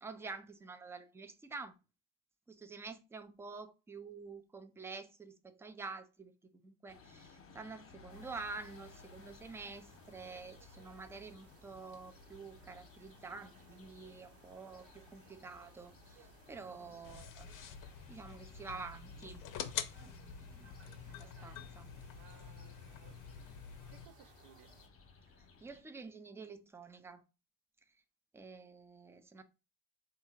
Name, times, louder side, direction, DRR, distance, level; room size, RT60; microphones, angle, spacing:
voice 1, 0.0-1.7 2.5-6.3 6.6-17.7 18.1-19.4 20.0-20.7 21.1-21.9 25.6-27.2 28.3-29.4, right 4 dB, 5° right, 0.3 m, -48 dB
sound 1, 6.9-25.8, left 4 dB, 30° left, 0.9 m, -60 dB
sound 2, 8.1-24.9, right 2 dB, 75° right, 1.3 m, -63 dB
sound 3, 17.0-24.1, left 8 dB, 45° left, 0.6 m, -46 dB
voice 2, 22.1-23.2 23.9-24.7, right 9 dB, 55° right, 0.6 m, -62 dB
3.4 x 2.5 x 4.3 m
hypercardioid pair, 75°, 45 cm